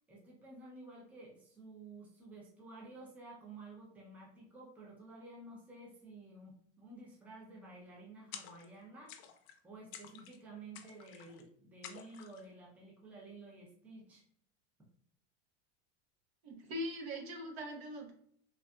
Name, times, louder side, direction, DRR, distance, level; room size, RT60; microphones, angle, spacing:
voice 1, 0.1-9.2 9.6-14.2, right 2 dB, 5° right, -3 dB, 0.5 m, -52 dB
sound 1, 8.3-8.8 9.1-9.6 9.9-10.4 10.8-11.4 11.8-12.5, left 9 dB, 60° left, 0.5 m, -51 dB
voice 2, 16.4-18.1, equal, 70° right, 2 dB, 1.1 m, -41 dB
3.4 x 2.7 x 2.2 m, 0.63 s
supercardioid pair, 155°, 32 cm